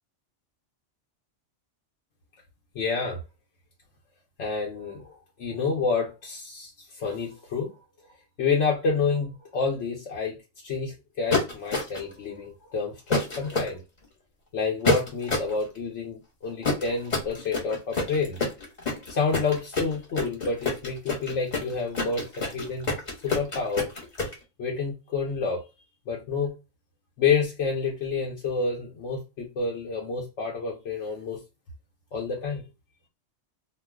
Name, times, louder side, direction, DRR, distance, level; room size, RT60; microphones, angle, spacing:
voice 1, 2.7-3.2 4.4-7.7 8.4-10.4 10.6-13.8 14.5-18.4 19.1-22.9 23.2-23.9 24.6-25.6 26.1-26.5 27.2-31.4 32.1-32.6, left 4 dB, 75° left, 1.0 m, -29 dB
sound 1, 11.3-12.1 13.1-13.7 14.8-15.5 16.6-24.3, left 3 dB, 40° left, 1.1 m, -27 dB
2.5 x 2.2 x 3.4 m
omnidirectional pair, 1.3 m